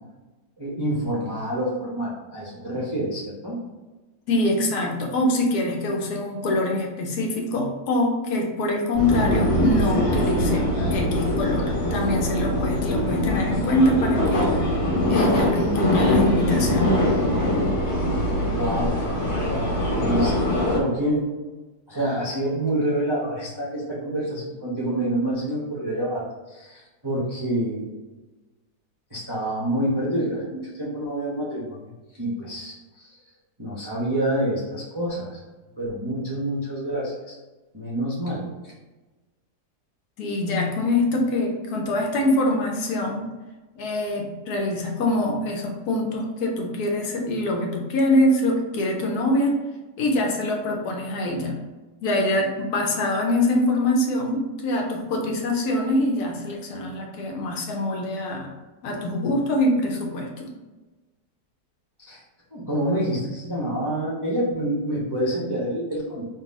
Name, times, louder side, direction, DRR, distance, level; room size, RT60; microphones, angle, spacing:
voice 1, 0.6-3.6 18.4-19.0 19.3-21.2 21.9-27.9 29.1-31.8 32.2-33.2 33.6-35.4 35.8-37.4 37.7-38.4 62.0-62.2 62.5-66.3, right 1 dB, 30° right, -7 dB, 0.4 m, -27 dB
voice 2, 4.3-17.0 40.2-43.3 43.8-49.6 50.0-51.6 52.0-58.5 58.8-60.6, left 1 dB, 70° left, 1 dB, 1.1 m, -24 dB
sound 1, 8.9-20.8, left 1 dB, 45° left, 1.6 m, -22 dB
3.9 x 2.3 x 4.0 m, 1.2 s
omnidirectional pair, 1.8 m